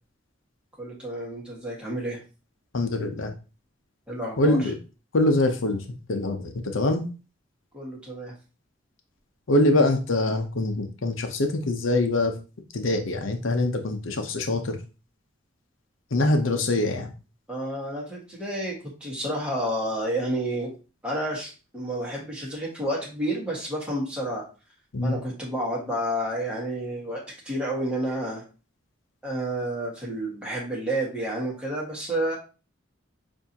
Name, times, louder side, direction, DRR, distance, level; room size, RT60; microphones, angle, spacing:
voice 1, 0.8-2.2 4.1-4.7 7.7-8.3 17.5-18.7 19.0-20.7 21.0-24.4 25.0-28.4 29.2-32.4, right 1 dB, 5° right, -3 dB, 1.6 m, -30 dB
voice 2, 2.7-3.3 4.4-4.7 5.1-5.8 6.1-7.0 9.5-12.3 12.7-14.8 16.1-17.1 24.9-25.1, left 2 dB, 80° left, 5 dB, 0.8 m, -24 dB
6.8 x 2.7 x 2.9 m, 0.33 s
head